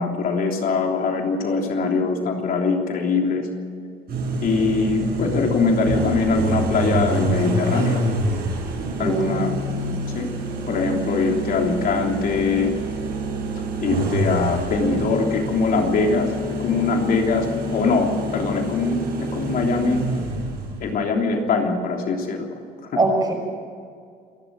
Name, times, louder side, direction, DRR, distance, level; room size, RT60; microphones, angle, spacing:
voice 1, 0.0-3.5 4.4-8.0 9.0-9.5 10.1-10.3 10.7-12.7 13.8-16.3 16.6-17.5 17.7-20.0 20.8-22.5, left 4 dB, 60° left, 2 dB, 3.3 m, -22 dB
sound 1, 4.1-20.9, right 2 dB, 65° right, 7.6 m, -27 dB
voice 2, 9.0-9.9 23.0-23.3, right 2 dB, 25° right, 3 dB, 6.0 m, -23 dB
27.5 x 12.0 x 7.7 m, 2.2 s
cardioid pair, 110°, 17 cm